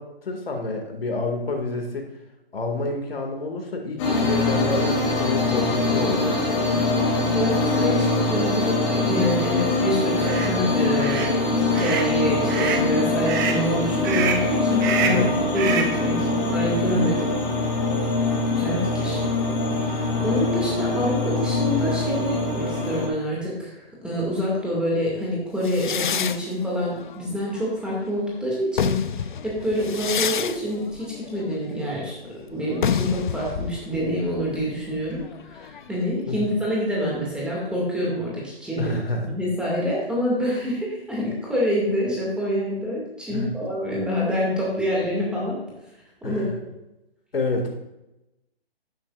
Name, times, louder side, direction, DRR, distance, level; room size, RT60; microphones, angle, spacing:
voice 1, 0.0-2.1 2.5-6.9 15.1-15.3 36.3-36.5 38.8-39.3 43.3-43.5 46.2-46.6 47.3-47.7, left 2 dB, 70° left, 2 dB, 2.2 m, -28 dB
sound 1, 4.0-23.1, left 2 dB, 25° left, 3.0 m, -23 dB
voice 2, 7.3-15.3 15.5-17.2 18.6-19.2 19.7-38.9 39.3-45.6 46.2-46.4, equal, 5° right, -5 dB, 2.2 m, -26 dB
sound 2, 10.2-10.5 11.0-11.3 11.7-12.1 12.5-12.9 13.2-13.6 14.0-14.5 14.8-15.3 15.5-16.0, right 6 dB, 20° right, 0.7 m, -27 dB
sound 3, 25.6-28.1 28.5-36.1, left 8 dB, 50° left, 0.5 m, -30 dB
12.5 x 10.5 x 2.5 m, 0.93 s
figure-of-eight pair, 145°, 31 cm